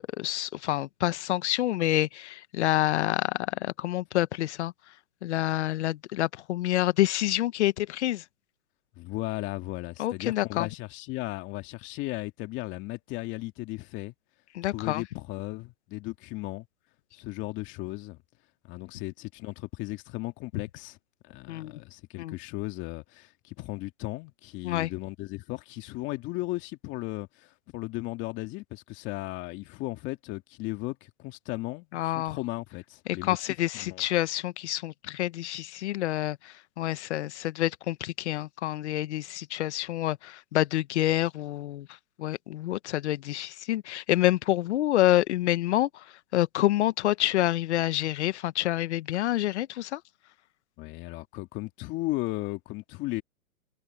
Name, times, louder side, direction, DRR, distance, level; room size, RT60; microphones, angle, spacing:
voice 1, 0.2-4.7 5.2-8.2 10.0-10.7 14.5-15.0 21.5-21.8 22.2-22.3 24.6-24.9 31.9-32.4 33.1-41.9 42.2-46.0 46.3-50.0, left 14 dB, 50° left, 1.3 m, -27 dB
voice 2, 9.0-14.1 14.7-16.7 17.1-18.2 18.6-21.0 21.2-33.4 33.7-34.1 50.8-53.2, left 20 dB, 25° left, 2.3 m, -36 dB
hypercardioid pair, 145°, 45 cm